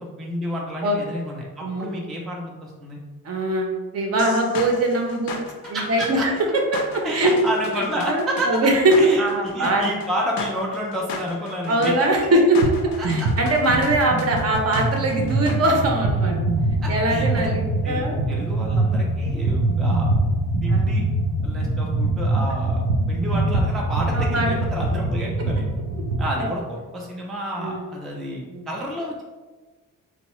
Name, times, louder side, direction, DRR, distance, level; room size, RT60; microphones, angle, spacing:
voice 1, 0.0-3.0 5.7-6.3 7.0-8.5 9.0-11.9 13.0-13.6 16.8-17.5 17.8-20.1 20.6-21.0 21.4-25.7 26.2-29.2, equal, ahead, -2 dB, 0.3 m, -30 dB
voice 2, 3.2-5.4 5.7-7.3 8.0-9.8 11.7-12.6 13.0-16.4 16.9-18.2 20.7-20.8 24.1-24.5 26.4-26.5 27.6-27.8 28.5-28.7, right 1 dB, 45° right, 1 dB, 0.6 m, -21 dB
sound 1, 4.2-15.8, left 4 dB, 80° left, 0.5 m, -36 dB
sound 2, 12.6-12.8 13.0-26.3, right 2 dB, 90° right, 0.5 m, -23 dB
3.0 x 2.1 x 2.9 m, 1.3 s
cardioid pair, 120°, 34 cm